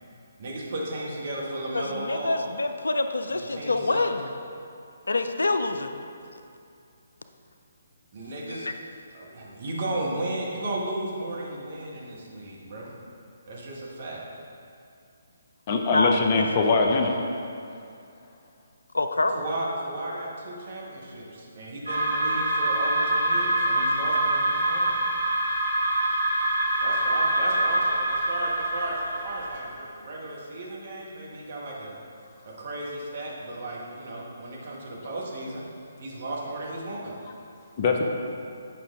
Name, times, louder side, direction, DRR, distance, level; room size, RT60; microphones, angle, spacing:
voice 1, 0.4-2.5 3.3-4.1 8.1-8.7 9.1-12.9 13.5-14.2 19.3-25.0 26.8-31.9 32.4-35.6 36.0-37.1, right 1 dB, 45° right, -4 dB, 1.5 m, -34 dB
voice 2, 1.7-4.3 5.1-5.9 8.5-8.7 15.9-16.4 18.9-19.4, left 2 dB, 70° left, 7 dB, 0.4 m, -26 dB
voice 3, 15.7-17.1 37.8-38.0, left 4 dB, 35° left, 2 dB, 0.7 m, -22 dB
sound 1, 21.9-29.6, right 1 dB, 80° right, 1.7 m, -25 dB
8.5 x 5.6 x 3.7 m, 2.5 s
figure-of-eight pair, 135°, 0 cm